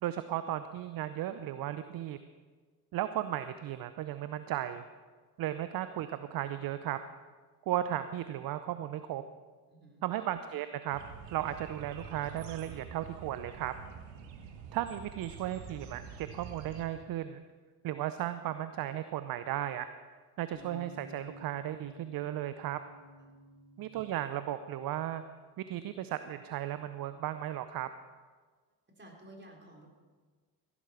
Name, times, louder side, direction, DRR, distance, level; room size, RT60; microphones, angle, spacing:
voice 1, 0.0-2.2 2.9-4.8 5.4-7.0 7.7-9.2 10.0-11.0 11.3-13.7 14.7-17.4 17.8-19.9 20.4-22.8 23.8-25.2 25.6-27.9, right 12 dB, 45° right, 12 dB, 0.7 m, -35 dB
voice 2, 9.7-10.0 23.2-23.3 28.9-29.9, right 1 dB, 20° right, 0 dB, 3.9 m, -53 dB
sound 1, 10.9-16.9, right 6 dB, 75° right, 1.5 m, -47 dB
sound 2, 20.5-26.8, equal, 40° left, 5.1 m, -54 dB
15.5 x 11.0 x 4.4 m, 1.4 s
hypercardioid pair, 55°, 50 cm